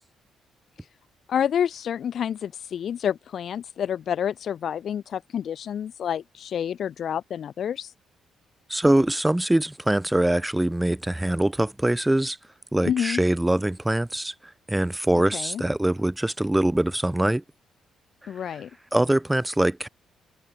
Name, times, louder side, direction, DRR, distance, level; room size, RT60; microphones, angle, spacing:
voice 1, 1.3-7.9 12.8-13.2 15.3-15.6 18.3-18.7, left 9 dB, 60° left, 0.9 m, -28 dB
voice 2, 8.7-12.4 12.7-17.4 18.2-18.6 18.9-19.9, right 1 dB, 10° right, 0.5 m, -23 dB
cardioid pair, 90°, 0 cm